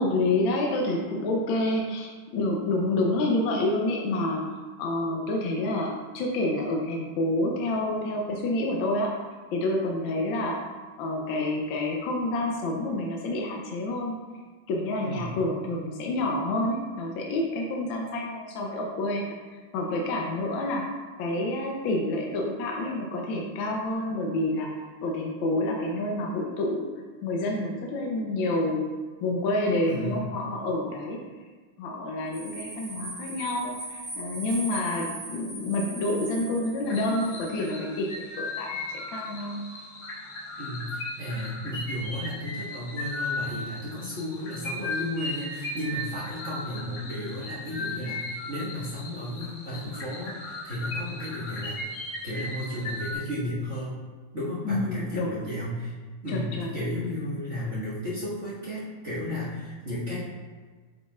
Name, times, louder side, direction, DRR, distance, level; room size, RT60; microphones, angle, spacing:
voice 1, 0.0-4.5 4.8-9.1 9.5-10.7 11.0-14.2 14.7-19.3 19.7-20.9 21.2-24.7 25.0-26.9 27.2-28.8 29.2-31.2 31.8-38.8 39.1-39.7 54.6-55.3 56.3-56.7, left 2 dB, 70° left, 0 dB, 1.4 m, -28 dB
voice 2, 15.0-15.3 29.8-30.3 40.6-51.8 52.2-54.0 54.3-56.0 56.2-60.2, left 1 dB, 35° right, -10 dB, 1.8 m, -33 dB
sound 1, 32.3-37.7, right 2 dB, 55° right, 2.5 m, -40 dB
sound 2, 36.9-53.1, left 2 dB, 50° left, 1.5 m, -37 dB
8.4 x 5.1 x 2.4 m, 1.4 s
omnidirectional pair, 2.3 m